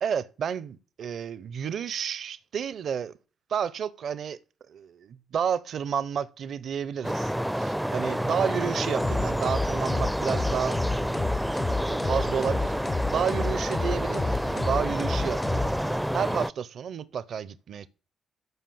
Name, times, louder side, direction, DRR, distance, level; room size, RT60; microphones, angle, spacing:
voice 1, 0.0-3.1 3.5-4.4 4.7-11.2 11.9-17.9, right 7 dB, 65° right, 0.8 m, -31 dB
sound 1, 7.0-16.5, equal, 5° right, 0.5 m, -29 dB
sound 2, 9.0-16.2, left 3 dB, 35° left, 0.7 m, -31 dB
12.5 x 5.6 x 7.0 m
supercardioid pair, 50°, 0 cm